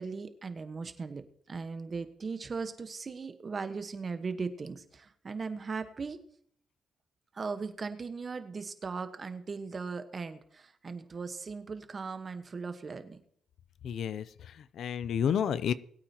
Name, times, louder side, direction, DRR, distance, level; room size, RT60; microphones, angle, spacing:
voice 1, 0.0-6.2 7.3-13.2, right 4 dB, 35° right, 9 dB, 1.2 m, -38 dB
voice 2, 13.8-15.7, left 8 dB, 65° left, 16 dB, 0.5 m, -31 dB
21.0 x 8.8 x 2.9 m, 0.64 s
cardioid pair, 90°, 0 cm